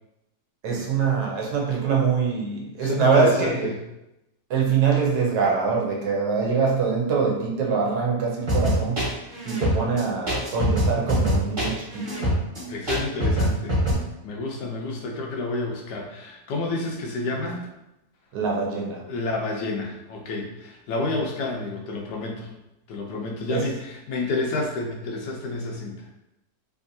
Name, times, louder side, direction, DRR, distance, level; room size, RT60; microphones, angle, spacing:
voice 1, 0.6-3.7 4.5-9.1 9.5-12.2 18.3-19.0 23.5-23.6, right 5 dB, 75° right, -1 dB, 1.3 m, -24 dB
voice 2, 2.8-3.8 12.7-13.8 14.2-17.7 18.7-22.5 22.9-26.1, left 2 dB, 85° left, 1 dB, 1.3 m, -30 dB
sound 1, 8.5-13.9, equal, 35° right, 1.3 m, -23 dB
3.4 x 2.7 x 2.6 m, 0.91 s
omnidirectional pair, 1.7 m